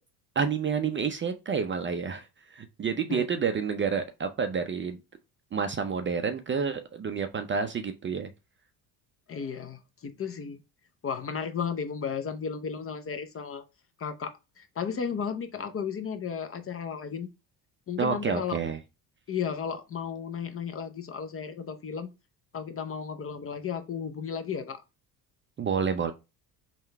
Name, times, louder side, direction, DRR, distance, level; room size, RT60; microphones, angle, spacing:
voice 1, 0.4-2.2 2.5-5.0 5.5-8.3 18.0-18.8 25.6-26.1, right 6 dB, 25° right, 0.4 m, -29 dB
voice 2, 9.3-10.6 11.0-13.6 14.0-17.3 17.9-18.6 19.3-22.1 22.5-24.8, left 6 dB, 30° left, 0.5 m, -34 dB
3.7 x 2.2 x 4.4 m
supercardioid pair, 70°, 48 cm